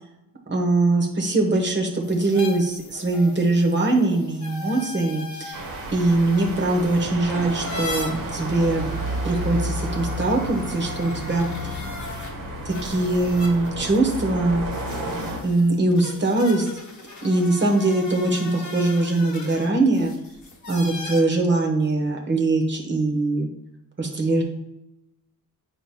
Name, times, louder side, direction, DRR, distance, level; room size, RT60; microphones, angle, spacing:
voice 1, 0.5-5.6 5.9-8.8 9.2-11.5 12.6-14.6 15.4-16.7 17.2-20.1 20.7-23.5 24.0-24.4, right 2 dB, 30° right, 1 dB, 1.1 m, -22 dB
sound 1, 2.0-12.3 12.7-21.2, left 3 dB, 55° left, 1.2 m, -39 dB
sound 2, 5.5-15.4, right 1 dB, 70° right, 1.1 m, -31 dB
8.8 x 4.9 x 2.2 m, 0.86 s
wide cardioid pair, 140°, 34 cm